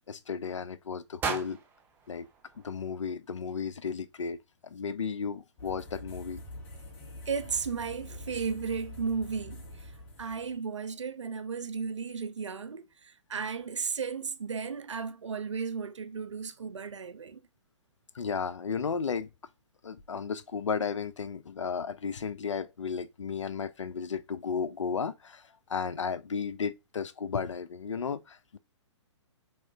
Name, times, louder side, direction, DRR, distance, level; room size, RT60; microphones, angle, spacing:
voice 1, 0.1-1.6 2.1-2.3 2.6-6.4 18.1-19.3 19.8-25.4 25.7-28.6, left 6 dB, 80° left, 0.4 m, -34 dB
sound 1, 1.2-3.4, right 5 dB, 15° right, 0.4 m, -38 dB
sound 2, 5.6-10.6, left 1 dB, 30° left, 1.5 m, -45 dB
voice 2, 7.3-9.9 10.2-17.4, right 5 dB, 75° right, 0.5 m, -34 dB
3.6 x 3.1 x 2.8 m
figure-of-eight pair, 120°, 15 cm